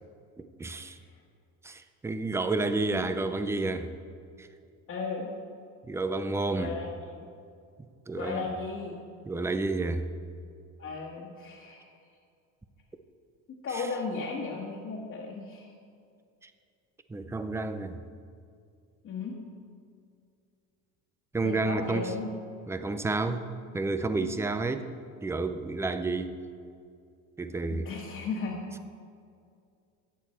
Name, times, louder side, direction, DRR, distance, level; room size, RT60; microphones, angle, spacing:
voice 1, 0.4-1.0 1.6-3.9 4.4-4.5 5.8-6.8 8.1-8.5 9.3-10.1 13.7-13.9 16.4-16.5 17.1-18.0 21.3-22.1 22.7-23.5 23.7-24.9 25.2-26.3 27.4-27.9, right 3 dB, 10° right, 9 dB, 0.5 m, -30 dB
voice 2, 4.9-5.3 6.5-7.3 8.2-9.0 10.8-11.9 13.5-15.7 19.0-19.3 21.4-22.3 27.7-28.6, left 4 dB, 40° left, -5 dB, 1.6 m, -35 dB
14.5 x 9.3 x 4.4 m, 2.3 s
cardioid pair, 140°, 36 cm